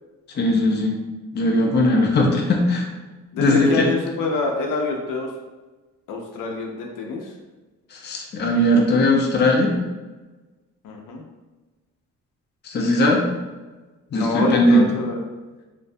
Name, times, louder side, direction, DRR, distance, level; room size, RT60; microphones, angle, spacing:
voice 1, 0.4-1.0 1.3-2.9 3.4-3.9 7.9-9.7 12.6-13.3 14.1-14.8, left 1 dB, 35° left, 0 dB, 0.5 m, -18 dB
voice 2, 3.3-5.3 6.1-7.3 10.8-11.2 14.1-15.2, left 3 dB, 85° left, 1 dB, 0.5 m, -26 dB
2.5 x 2.1 x 2.6 m, 1.2 s
cardioid pair, 115°, 31 cm